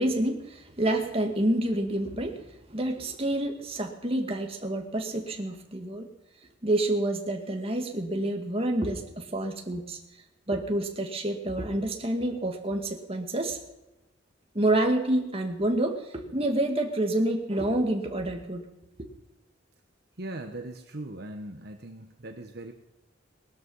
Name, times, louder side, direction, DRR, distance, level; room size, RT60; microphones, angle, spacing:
voice 1, 0.0-6.1 6.6-10.0 10.5-13.6 14.5-18.7, right 1 dB, 30° right, 3 dB, 2.1 m, -28 dB
voice 2, 20.2-22.7, right 1 dB, 55° right, 4 dB, 1.2 m, -39 dB
19.5 x 13.0 x 5.6 m, 0.94 s
head